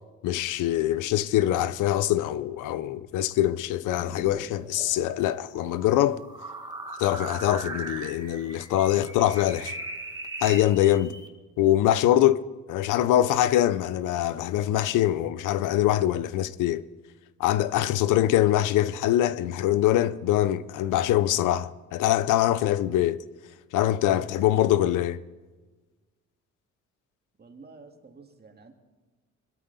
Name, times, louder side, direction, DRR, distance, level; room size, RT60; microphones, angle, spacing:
voice 1, 0.2-6.2 7.0-9.8 10.4-11.1 11.6-16.8 17.4-23.2 23.7-25.2, left 13 dB, 90° left, 0.6 m, -23 dB
sound 1, 3.9-11.3, right 2 dB, 15° right, 1.7 m, -40 dB
voice 2, 27.4-28.7, right 4 dB, 30° right, 2.3 m, -50 dB
21.0 x 13.0 x 4.1 m
cardioid pair, 90°, 30 cm